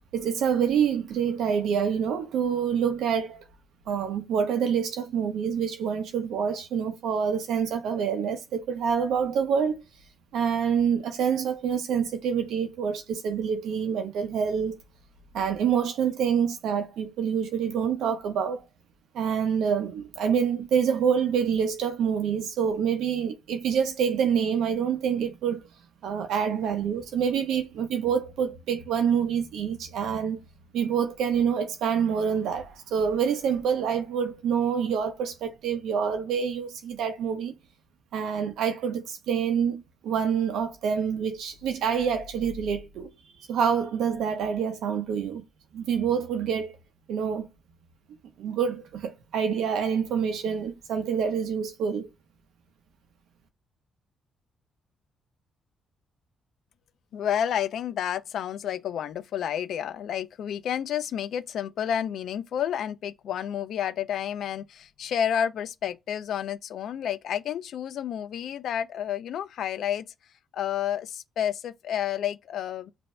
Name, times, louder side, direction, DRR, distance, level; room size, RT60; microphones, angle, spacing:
voice 1, 0.1-3.5 3.9-9.8 10.3-14.8 15.3-18.6 19.1-25.7 26.0-30.4 30.7-37.5 38.1-43.1 43.5-45.4 45.7-46.8 47.1-47.5 48.4-52.1, right 7 dB, 80° right, 0.7 m, -26 dB
voice 2, 57.1-70.1 70.5-72.9, left 9 dB, 65° left, 0.5 m, -30 dB
5.3 x 2.6 x 2.2 m
cardioid pair, 135°, 0 cm